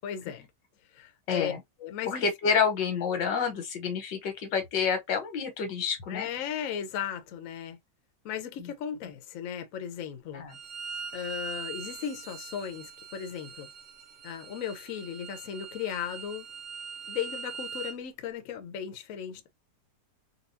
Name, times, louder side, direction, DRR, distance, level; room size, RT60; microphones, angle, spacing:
voice 1, 0.0-0.5 0.9-1.5 1.8-2.3 6.1-7.8 8.2-10.5 11.1-13.7 14.2-16.5 17.1-19.5, left 9 dB, 60° left, 1.0 m, -36 dB
voice 2, 1.3-1.6 2.1-6.3 8.6-8.7 10.3-10.5, left 6 dB, 85° left, 1.7 m, -28 dB
Bowed string instrument, 10.5-18.0, right 6 dB, 60° right, 0.4 m, -42 dB
4.1 x 2.3 x 2.6 m
omnidirectional pair, 1.9 m